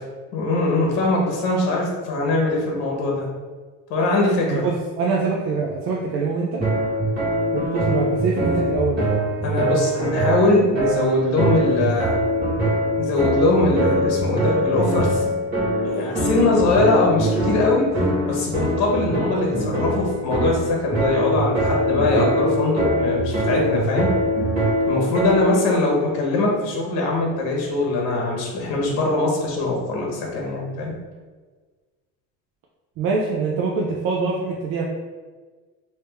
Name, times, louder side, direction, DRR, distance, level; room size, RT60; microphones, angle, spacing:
voice 1, 0.3-3.3 3.9-4.6 9.4-12.1 13.0-15.3 15.8-17.9 18.3-24.1 24.9-30.9, left 2 dB, 60° left, -1 dB, 1.1 m, -21 dB
voice 2, 4.5-6.6 7.5-9.0 33.0-34.9, right 4 dB, 55° right, -1 dB, 0.5 m, -24 dB
sound 1, 6.6-25.7, equal, 35° right, 1.4 m, -23 dB
3.4 x 2.8 x 3.3 m, 1.4 s
cardioid pair, 160°, 29 cm